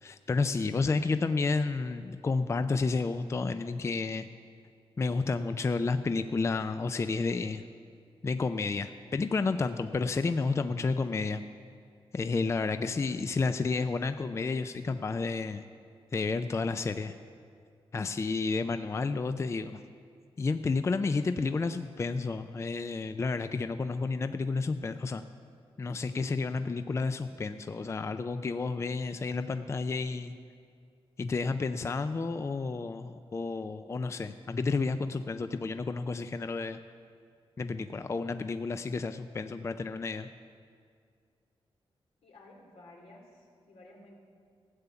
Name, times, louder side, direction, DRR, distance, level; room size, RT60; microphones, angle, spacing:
voice 1, 0.0-4.3 5.0-7.6 8.2-11.4 12.1-15.6 16.1-17.2 17.9-19.8 20.4-25.2 25.8-30.4 31.2-36.8 37.6-40.3, left 4 dB, 30° left, 10 dB, 0.4 m, -31 dB
voice 2, 42.2-44.2, left 1 dB, 90° left, -1 dB, 2.5 m, -54 dB
14.5 x 8.3 x 6.9 m, 2.2 s
wide cardioid pair, 115°, 10 cm